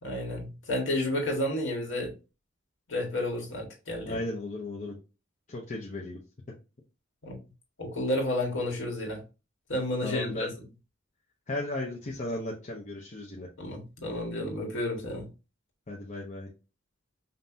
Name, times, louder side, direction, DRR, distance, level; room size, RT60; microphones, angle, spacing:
voice 1, 0.0-2.1 2.9-4.2 7.2-7.4 7.8-9.2 9.7-10.5 13.6-15.3, left 1 dB, 65° left, 1.8 m, -31 dB
voice 2, 4.0-5.0 5.5-6.2 10.0-10.5 11.5-13.5 15.9-16.5, left 1 dB, 35° left, 0.8 m, -35 dB
5.4 x 2.7 x 2.7 m
head